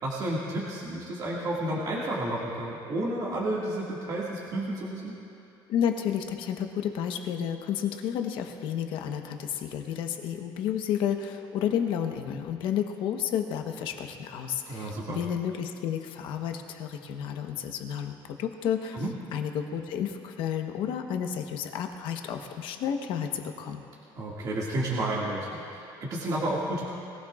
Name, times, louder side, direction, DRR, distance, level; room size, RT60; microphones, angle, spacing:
voice 1, 0.0-5.2 14.7-15.2 18.9-19.1 24.2-26.8, right 1 dB, 45° right, -5 dB, 2.0 m, -31 dB
voice 2, 5.7-19.0 19.3-23.8, left 9 dB, 70° left, 5 dB, 1.1 m, -31 dB
21.5 x 16.0 x 2.5 m, 2.7 s
cardioid pair, 135°, 9 cm